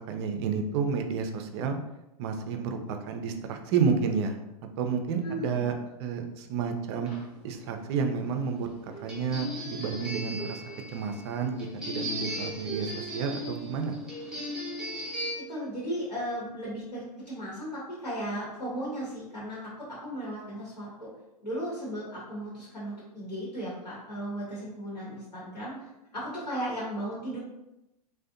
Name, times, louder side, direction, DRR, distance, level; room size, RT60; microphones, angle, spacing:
voice 1, 0.1-1.8 2.2-4.4 4.8-5.7 6.0-7.1 7.4-10.6 10.9-14.0, right 6 dB, 45° right, 6 dB, 0.4 m, -30 dB
voice 2, 5.2-5.7 15.4-19.6 19.9-21.1 21.4-25.8 26.1-27.4, equal, 90° left, -7 dB, 1.0 m, -36 dB
sound 1, 7.1-15.3, equal, 5° right, 0.7 m, -37 dB
2.5 x 2.1 x 2.4 m, 0.92 s
hypercardioid pair, 110°, 20 cm